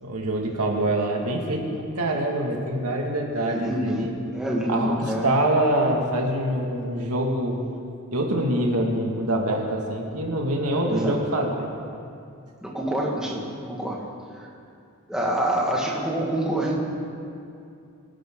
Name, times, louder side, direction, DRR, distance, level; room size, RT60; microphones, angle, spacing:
voice 1, 0.0-4.1 4.7-7.6 8.1-11.7, right 1 dB, 85° right, 0 dB, 2.2 m, -25 dB
voice 2, 3.4-5.2 10.8-11.2 12.6-14.0 15.1-16.8, right 1 dB, 5° right, -3 dB, 1.9 m, -26 dB
23.5 x 12.5 x 3.9 m, 2.5 s
head